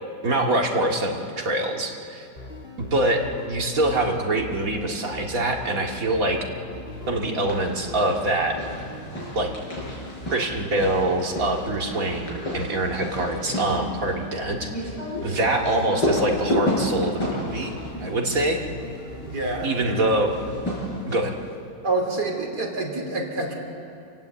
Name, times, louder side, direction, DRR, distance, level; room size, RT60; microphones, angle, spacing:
voice 1, 0.2-2.3 2.8-6.4 7.1-8.6 9.4-9.5 10.3-14.9 15.2-18.6 19.6-20.3 21.1-21.4, right 2 dB, 55° right, 1 dB, 2.5 m, -24 dB
sound 1, 2.4-21.0, left 1 dB, 30° left, 2.4 m, -39 dB
sound 2, 7.2-7.7 8.0-19.0 20.3-21.5, left 1 dB, 85° left, 6.7 m, -31 dB
voice 2, 19.3-19.8 21.8-23.5, right 2 dB, 70° right, 0 dB, 3.8 m, -28 dB
27.5 x 17.5 x 8.2 m, 2.6 s
omnidirectional pair, 1.8 m